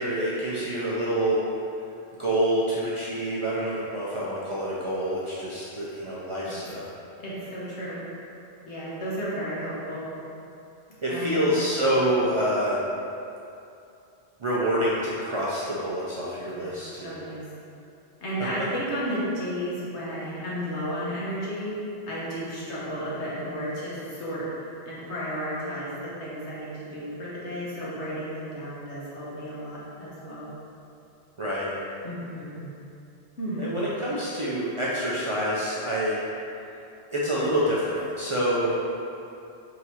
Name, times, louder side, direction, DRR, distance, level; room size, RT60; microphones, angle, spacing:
voice 1, 0.0-1.4 2.2-6.9 11.0-12.8 14.4-17.2 18.4-18.5 31.4-31.7 33.6-36.2 37.1-38.8, right 1 dB, 50° right, -8 dB, 0.4 m, -27 dB
voice 2, 7.2-8.0 8.7-10.1 11.1-11.5 16.6-16.7 17.0-17.4 18.2-21.7 22.1-24.5 24.8-30.5 32.0-32.7 33.4-33.8, equal, 90° left, -8 dB, 1.4 m, -33 dB
3.7 x 2.8 x 4.3 m, 2.7 s
omnidirectional pair, 1.1 m